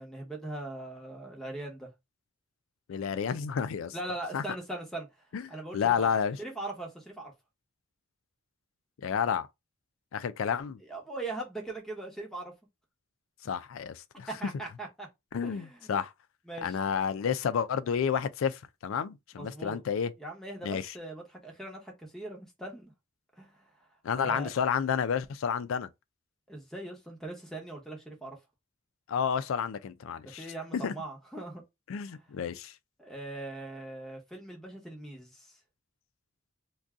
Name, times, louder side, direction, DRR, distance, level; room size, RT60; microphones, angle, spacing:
voice 1, 0.0-1.9 3.9-5.1 5.5-6.1 6.4-7.3 10.8-12.5 14.3-15.1 15.4-16.0 16.5-16.8 19.4-19.8 20.2-22.9 23.4-23.9 24.2-24.5 26.5-28.4 30.2-31.6 32.1-32.3 33.0-35.6, right 2 dB, ahead, 0.8 m, -40 dB
voice 2, 2.9-4.0 4.3-4.4 5.3-5.4 5.7-6.4 9.0-9.5 10.1-10.8 13.4-14.3 15.3-16.1 16.6-20.1 20.6-20.9 24.0-25.9 29.1-30.5 30.7-30.9 31.9-32.7, left 7 dB, 85° left, 0.4 m, -30 dB
2.6 x 2.3 x 3.5 m
head